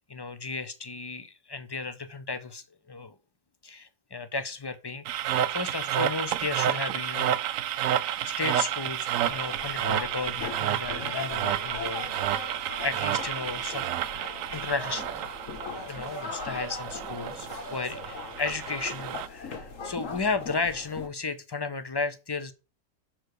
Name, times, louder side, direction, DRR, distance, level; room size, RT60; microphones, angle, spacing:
voice 1, 0.1-3.2 3.6-7.4 7.7-15.0 15.5-22.5, left 4 dB, 30° left, 0.5 m, -34 dB
sound 1, 5.1-19.3, right 11 dB, 85° right, 1.0 m, -30 dB
sound 2, 9.2-21.1, left 4 dB, 75° left, 1.7 m, -40 dB
6.6 x 4.5 x 6.5 m
omnidirectional pair, 1.4 m